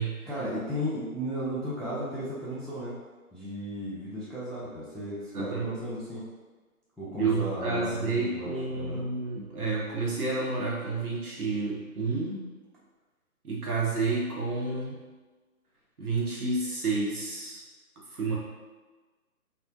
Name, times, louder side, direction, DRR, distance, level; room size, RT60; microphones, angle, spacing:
voice 1, 0.3-3.0 3.3-6.2 7.0-9.0, equal, ahead, -9 dB, 0.3 m, -35 dB
voice 2, 5.3-5.7 7.2-12.4 13.4-15.0 16.0-17.6 18.2-18.4, right 3 dB, 80° right, -4 dB, 0.9 m, -30 dB
2.4 x 2.0 x 2.5 m, 1.3 s
figure-of-eight pair, 175°, 44 cm